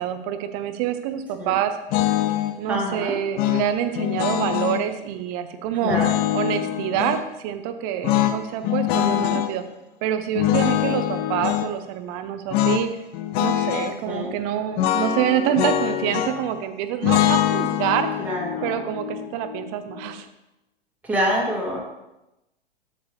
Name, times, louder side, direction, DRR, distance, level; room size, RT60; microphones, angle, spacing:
voice 1, 0.0-1.8 2.6-6.0 6.3-9.6 10.0-12.9 13.4-18.1 18.6-20.3, right 10 dB, 40° right, 9 dB, 0.8 m, -26 dB
sound 1, 1.9-2.6 3.4-4.8 5.9-7.3 8.0-9.5 10.4-11.7 12.5-12.9 13.1-13.9 14.8-16.5 17.0-20.1, left 12 dB, 30° left, 0.6 m, -23 dB
voice 2, 2.7-3.1 5.8-6.2 9.0-9.4 14.1-14.3 18.2-18.8 21.0-21.8, equal, 5° right, -4 dB, 1.8 m, -26 dB
8.0 x 7.1 x 3.2 m, 0.93 s
figure-of-eight pair, 105°, 29 cm